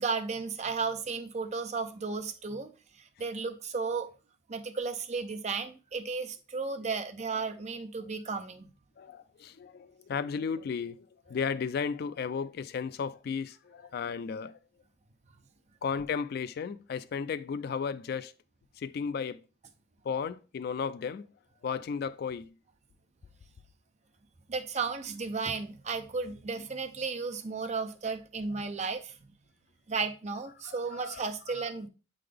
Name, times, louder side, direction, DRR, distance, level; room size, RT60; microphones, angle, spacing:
voice 1, 0.0-2.7 3.0-4.1 4.5-8.7 24.5-29.1 29.9-31.9, right 4 dB, 35° right, 0.6 m, -34 dB
voice 2, 9.0-14.6 15.8-18.3 18.8-19.4 20.1-21.2 21.6-22.5 30.6-31.2 31.6-31.7, left 6 dB, 55° left, 0.3 m, -34 dB
7.6 x 3.8 x 3.3 m
head